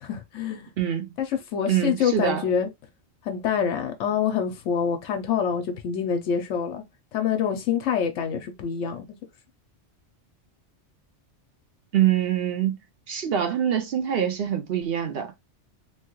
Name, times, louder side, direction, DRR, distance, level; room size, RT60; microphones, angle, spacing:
voice 1, 0.0-0.7 1.2-1.3 1.5-2.7 3.2-6.8 7.1-9.0, left 7 dB, 90° left, 1.0 m, -26 dB
voice 2, 0.8-1.1 1.7-2.4 11.9-12.8 13.1-15.3, right 10 dB, 60° right, 0.8 m, -24 dB
3.1 x 2.3 x 3.0 m
omnidirectional pair, 1.2 m